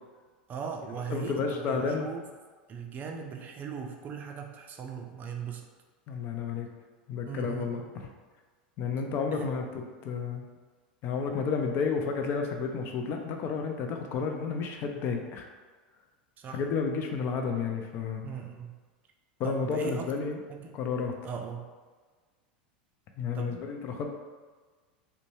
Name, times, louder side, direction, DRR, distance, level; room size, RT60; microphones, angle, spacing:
voice 1, 0.5-2.3 2.7-5.7 7.3-7.8 9.3-9.5 16.4-16.6 18.2-18.8 19.4-20.1 20.5-20.8 21.2-21.7 23.3-23.7, right 6 dB, 35° right, 3 dB, 0.4 m, -39 dB
voice 2, 1.1-2.1 6.1-6.7 7.1-7.8 8.8-9.6 10.0-10.4 11.0-15.5 16.5-18.2 19.4-20.4 20.7-21.1 23.2-24.1, left 5 dB, 45° left, 4 dB, 0.4 m, -31 dB
2.6 x 2.1 x 3.0 m, 1.4 s
hypercardioid pair, 100°, 5 cm